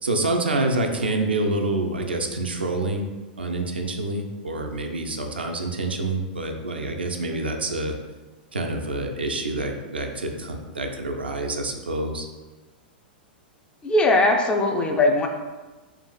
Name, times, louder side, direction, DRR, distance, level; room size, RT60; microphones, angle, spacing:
voice 1, 0.0-3.1 3.4-8.0 8.5-12.3, right 2 dB, 80° right, 3 dB, 0.4 m, -27 dB
voice 2, 13.8-15.3, left 2 dB, 15° left, 2 dB, 0.4 m, -19 dB
3.8 x 2.4 x 2.3 m, 1.2 s
figure-of-eight pair, 100°, 5 cm